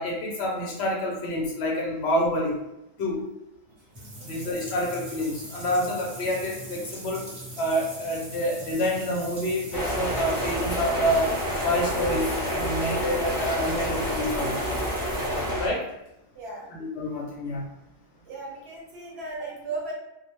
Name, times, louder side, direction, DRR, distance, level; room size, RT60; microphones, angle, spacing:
voice 1, 0.0-2.6 3.0-3.2 4.2-7.2 7.6-11.3 11.6-14.6 15.6-15.8 16.7-17.7, equal, 65° left, -1 dB, 0.7 m, -27 dB
sound 1, 3.7-16.1, right 1 dB, 30° right, 0.6 m, -41 dB
sound 2, 9.7-15.7, equal, 20° left, 0.6 m, -28 dB
voice 2, 16.3-16.7 18.2-19.9, right 2 dB, 60° right, -3 dB, 0.9 m, -36 dB
2.3 x 2.1 x 2.9 m, 0.90 s
omnidirectional pair, 1.3 m